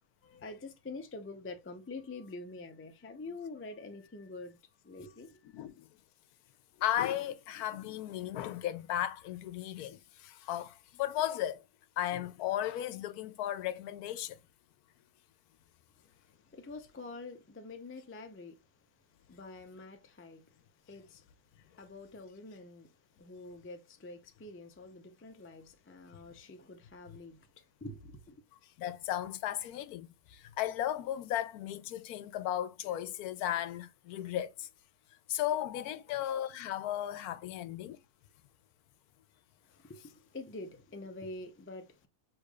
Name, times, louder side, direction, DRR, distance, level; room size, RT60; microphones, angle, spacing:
voice 1, 0.2-4.6 4.8-5.7 16.0-18.6 19.3-20.5 20.9-21.2 21.8-22.9 23.2-28.4 39.6-42.1, left 2 dB, 20° left, 0.3 m, -46 dB
voice 2, 5.5-5.8 6.8-11.6 12.0-14.4 28.8-34.7 35.3-38.0, left 12 dB, 80° left, 1.1 m, -35 dB
6.5 x 3.3 x 2.4 m
omnidirectional pair, 1.6 m